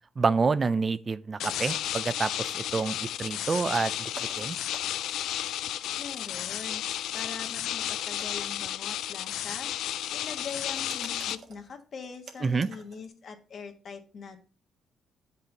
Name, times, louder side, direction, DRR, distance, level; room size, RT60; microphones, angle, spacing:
voice 1, 0.2-4.1 4.4-4.6 12.4-12.7, right 4 dB, 35° right, 0.5 m, -28 dB
sound 1, 0.8-1.0 1.4-2.1 2.5-2.9 3.5-5.2 6.1-7.6 8.2-8.8 10.5-13.1, right 4 dB, 55° right, 1.5 m, -49 dB
sound 2, 1.4-11.4, left 12 dB, 85° left, 0.3 m, -33 dB
voice 2, 6.0-6.8 7.1-9.7 10.1-14.4, left 5 dB, 55° left, 1.5 m, -42 dB
8.6 x 5.5 x 3.9 m
cardioid pair, 90°, 0 cm